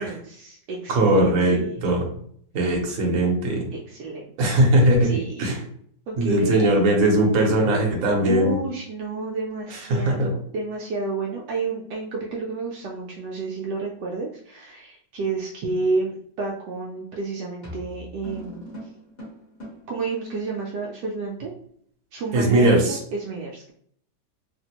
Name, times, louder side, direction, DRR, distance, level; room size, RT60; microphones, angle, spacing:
voice 1, 0.0-1.7 3.7-4.5 5.0-5.5 6.1-6.8 8.2-18.7 19.9-21.5 22.1-23.7, right 3 dB, 75° right, -2 dB, 1.2 m, -30 dB
voice 2, 0.9-2.1 2.5-3.7 4.4-5.6 6.2-8.6 9.9-10.3 22.3-23.0, right 1 dB, 60° right, 0 dB, 1.2 m, -20 dB
sound 1, 16.7-17.0 17.6-20.0, equal, 30° left, 1.2 m, -40 dB
3.4 x 2.5 x 2.8 m, 0.64 s
omnidirectional pair, 1.9 m